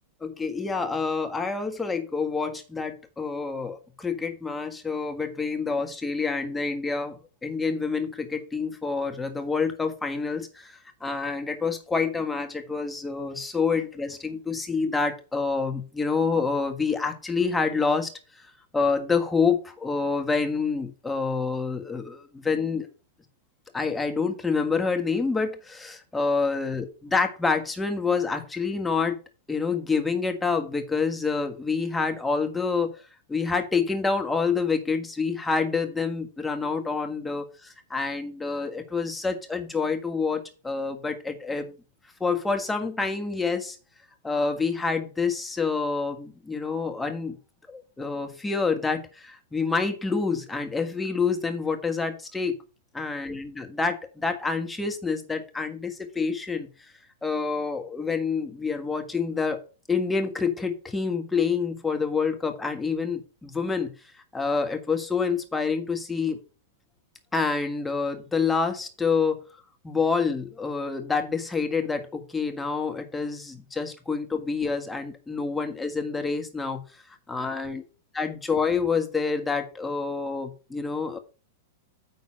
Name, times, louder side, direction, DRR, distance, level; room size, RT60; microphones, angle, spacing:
voice 1, 0.2-18.1 18.7-22.9 23.7-29.2 29.5-33.0 33.3-41.8 42.2-43.8 44.2-47.4 47.7-52.6 52.9-56.7 57.2-59.6 59.9-63.9 64.3-66.4 67.3-69.4 69.8-76.8 77.3-77.8 78.1-81.2, left 4 dB, 10° left, 5 dB, 1.6 m, -27 dB
9.4 x 3.9 x 6.3 m, 0.36 s
hypercardioid pair, 110°, 0 cm